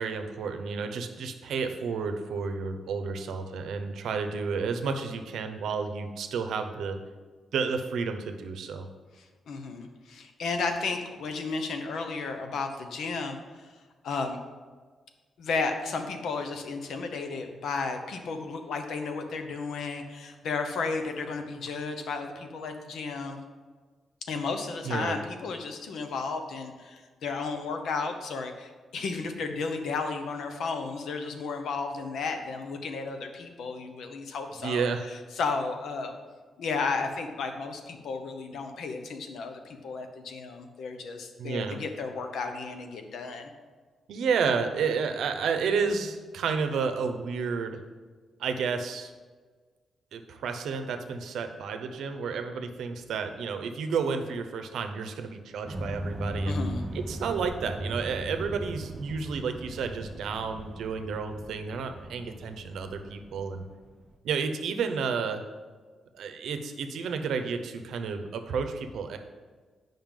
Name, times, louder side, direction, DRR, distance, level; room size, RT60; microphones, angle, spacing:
voice 1, 0.0-7.0 7.5-8.9 24.8-25.2 34.6-35.0 41.4-41.8 44.1-47.8 48.4-49.1 50.1-56.6 56.9-63.6 64.2-65.4 66.1-69.2, right 5 dB, 85° right, 7 dB, 0.7 m, -31 dB
voice 2, 9.2-13.7 14.0-14.4 15.4-23.4 24.3-36.2 36.6-43.5 56.5-56.8, left 4 dB, 75° left, 6 dB, 0.8 m, -33 dB
sound 1, 55.6-64.1, right 1 dB, 15° right, 0.8 m, -37 dB
8.9 x 5.4 x 3.7 m, 1.5 s
wide cardioid pair, 135°, 0 cm